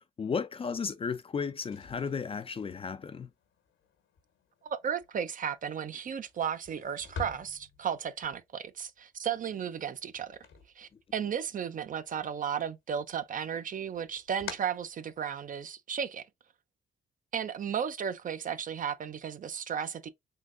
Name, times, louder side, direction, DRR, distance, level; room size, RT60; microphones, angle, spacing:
voice 1, 0.2-3.3, left 5 dB, 30° left, 0.4 m, -34 dB
sound 1, 1.5-11.5 11.8-12.7 13.0-15.7, left 5 dB, 80° left, 1.2 m, -49 dB
voice 2, 4.6-10.4 10.8-16.2 17.3-20.1, right 8 dB, 45° right, 0.5 m, -34 dB
3.7 x 2.6 x 2.5 m
cardioid pair, 90°, 20 cm